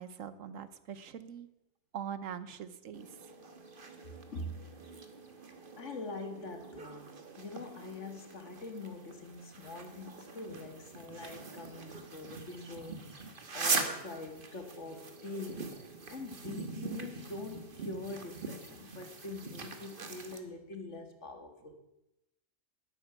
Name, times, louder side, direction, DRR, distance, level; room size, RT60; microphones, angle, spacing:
voice 1, 0.0-1.5 1.9-3.1, right 8 dB, 80° right, 14 dB, 1.3 m, -42 dB
sound 1, 2.9-20.4, right 4 dB, 40° right, 1.5 m, -42 dB
voice 2, 4.3-4.7 5.8-13.0 13.5-21.8, left 3 dB, 65° left, 6 dB, 2.1 m, -44 dB
12.0 x 8.9 x 8.8 m, 0.91 s
omnidirectional pair, 1.4 m